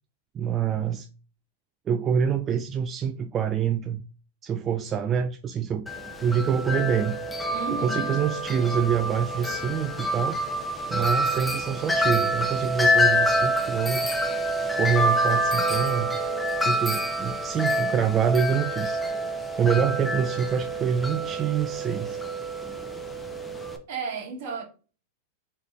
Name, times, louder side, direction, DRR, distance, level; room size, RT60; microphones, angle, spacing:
voice 1, 0.3-1.1 1.9-4.0 4.4-5.9 6.2-7.2 7.7-10.4 10.9-14.2 14.7-16.1 16.6-19.0 19.6-22.2, right 7 dB, 25° right, 0.3 m, -26 dB
Wind chime, 5.9-23.8, equal, 10° left, 0.7 m, -27 dB
voice 2, 7.5-8.1 23.9-24.6, right 5 dB, 60° right, 1.7 m, -33 dB
4.3 x 3.2 x 3.1 m
hypercardioid pair, 120°, 0 cm